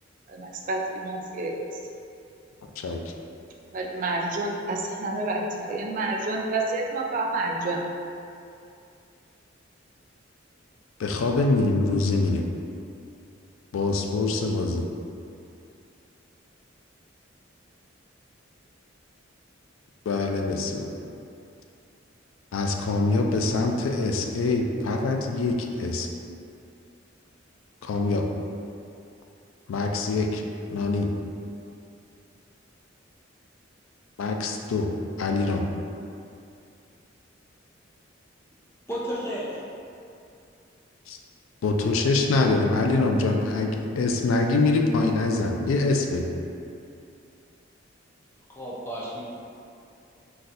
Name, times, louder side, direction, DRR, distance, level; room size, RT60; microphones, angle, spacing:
voice 1, 0.3-1.8 3.7-7.8, right 2 dB, 40° right, 1 dB, 0.3 m, -29 dB
voice 2, 11.0-12.4 13.7-14.8 20.1-20.9 22.5-26.1 27.8-28.2 29.7-30.4 30.7-31.1 34.2-34.9 35.2-35.6 41.1-41.2 41.6-46.3, left 3 dB, 90° left, 3 dB, 0.3 m, -24 dB
voice 3, 38.9-39.6 48.5-49.2, equal, 15° left, -7 dB, 0.5 m, -32 dB
4.0 x 2.3 x 2.5 m, 2.5 s
head